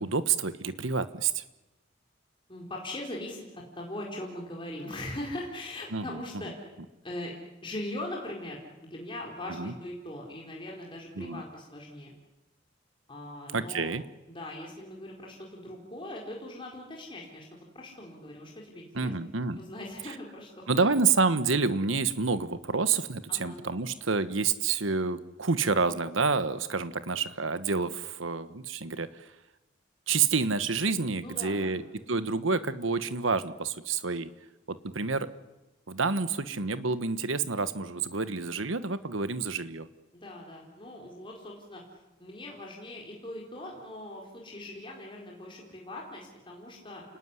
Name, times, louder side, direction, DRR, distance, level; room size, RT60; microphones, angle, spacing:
voice 1, 0.0-1.4 5.9-6.2 9.5-9.7 11.2-11.4 13.5-14.0 18.9-19.6 20.7-29.3 30.1-31.8 32.1-34.3 34.7-35.3 35.9-39.9, right 4 dB, 85° right, 12 dB, 1.3 m, -28 dB
voice 2, 2.5-6.5 7.0-7.3 7.6-12.1 13.1-13.9 14.3-19.1 19.6-20.9 23.3-23.6 31.2-31.8 40.1-47.0, left 1 dB, 25° left, -1 dB, 4.6 m, -41 dB
29.0 x 19.0 x 9.8 m, 1.0 s
head